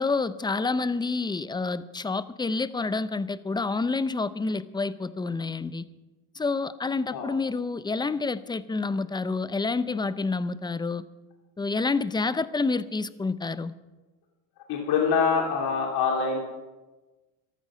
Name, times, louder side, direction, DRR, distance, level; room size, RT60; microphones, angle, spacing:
voice 1, 0.0-5.8 6.4-11.0 11.6-13.7, left 3 dB, 10° left, 15 dB, 0.6 m, -28 dB
voice 2, 14.7-16.4, left 5 dB, 60° left, 0 dB, 3.0 m, -24 dB
14.0 x 13.0 x 6.3 m, 1.2 s
supercardioid pair, 95°, 43 cm